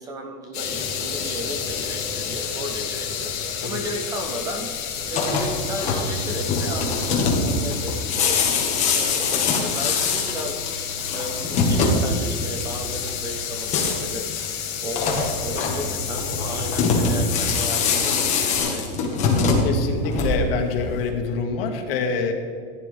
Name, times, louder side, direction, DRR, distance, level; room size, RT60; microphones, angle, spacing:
voice 1, 0.0-18.8, right 1 dB, 15° right, 3 dB, 0.4 m, -34 dB
sound 1, 0.5-18.6, left 8 dB, 55° left, 2.7 m, -30 dB
sound 2, 5.0-20.7, left 4 dB, 25° left, 1.5 m, -24 dB
voice 2, 19.6-22.3, left 4 dB, 75° left, 3 dB, 1.8 m, -26 dB
15.0 x 9.7 x 3.4 m, 2.2 s
supercardioid pair, 180°, 29 cm